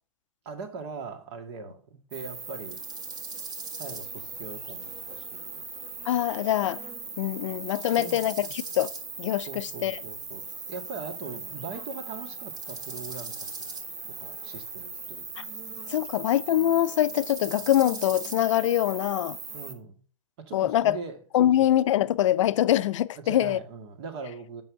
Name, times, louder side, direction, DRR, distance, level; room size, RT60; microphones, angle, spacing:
voice 1, 0.5-2.8 3.8-5.6 8.0-8.3 9.5-13.3 13.6-13.7 14.2-15.3 19.5-19.9 20.5-21.2 21.6-21.7 23.2-24.6, right 5 dB, 50° right, 2.1 m, -40 dB
sound 1, 2.1-19.7, right 4 dB, 20° right, 1.3 m, -39 dB
voice 2, 6.1-6.8 7.2-8.9 9.2-10.0 15.4-15.5 15.9-19.4 20.5-21.0 21.3-23.6, left 12 dB, 65° left, 0.5 m, -24 dB
7.7 x 5.5 x 6.3 m
hypercardioid pair, 125°, 17 cm